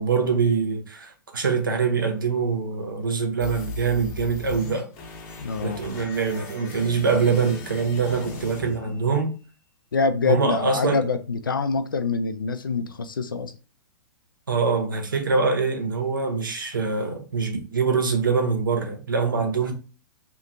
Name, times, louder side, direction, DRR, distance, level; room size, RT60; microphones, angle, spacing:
voice 1, 0.0-4.9 5.6-9.4 10.3-11.0 14.5-19.7, right 5 dB, 75° right, 0.7 m, -24 dB
sound 1, 3.4-9.4, left 3 dB, 45° left, 0.8 m, -38 dB
voice 2, 5.4-5.9 8.8-9.0 9.9-13.5, left 4 dB, 80° left, 0.4 m, -25 dB
2.8 x 2.4 x 2.6 m
figure-of-eight pair, 105°, 11 cm